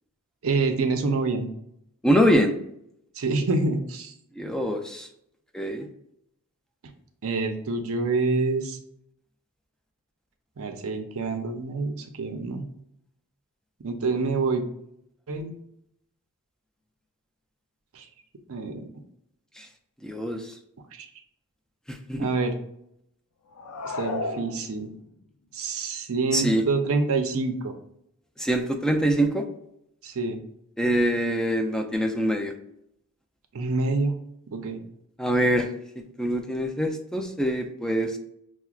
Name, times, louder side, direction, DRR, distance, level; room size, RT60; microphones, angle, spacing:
voice 1, 0.4-1.5 3.2-4.1 7.2-8.8 10.6-12.6 13.8-14.6 15.3-15.5 17.9-18.1 18.5-18.9 20.9-21.1 22.2-22.5 23.8-24.9 25.5-27.7 30.0-30.4 33.5-34.2 34.5-34.8, right 3 dB, 65° right, 6 dB, 0.5 m, -27 dB
voice 2, 2.0-2.5 4.4-5.1 5.5-5.9 19.6-19.7 20.0-20.4 21.9-22.3 26.3-26.6 28.4-29.4 30.8-32.5 35.2-35.7 36.0-38.2, equal, 5° left, 4 dB, 0.4 m, -24 dB
sound 1, 23.5-25.2, left 3 dB, 90° left, 0.5 m, -33 dB
5.7 x 2.1 x 2.3 m, 0.74 s
head